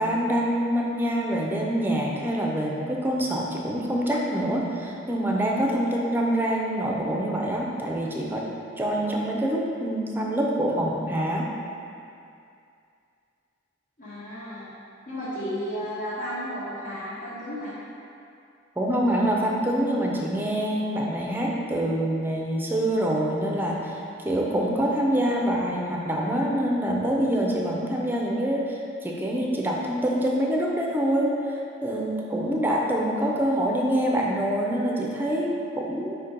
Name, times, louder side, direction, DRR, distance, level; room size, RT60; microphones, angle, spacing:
voice 1, 0.0-8.5 8.8-11.5 18.8-36.2, right 1 dB, 10° right, -2 dB, 0.6 m, -25 dB
voice 2, 14.0-14.7 15.1-17.8, equal, 50° left, -12 dB, 1.3 m, -33 dB
5.2 x 4.2 x 5.1 m, 2.5 s
head